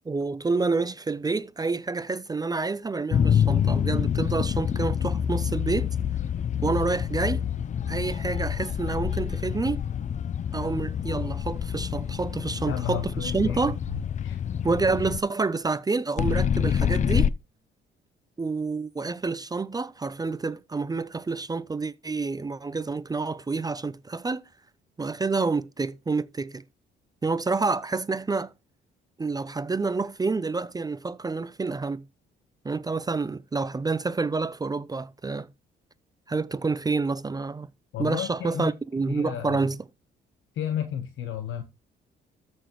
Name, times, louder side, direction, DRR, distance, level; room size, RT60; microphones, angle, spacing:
voice 1, 0.1-5.9 6.6-7.4 7.9-9.8 10.5-13.8 14.6-17.3 18.4-24.4 25.0-26.6 27.2-28.5 29.2-32.0 32.6-35.5 36.3-37.7 38.0-39.8, right 4 dB, 20° right, 0.5 m, -28 dB
sound 1, 3.1-15.2 16.2-17.3, left 8 dB, 40° left, 0.4 m, -27 dB
voice 2, 12.7-14.4 37.9-38.7 39.1-39.7 40.5-41.6, left 9 dB, 80° left, 1.2 m, -32 dB
13.5 x 6.2 x 3.1 m
cardioid pair, 90°, 20 cm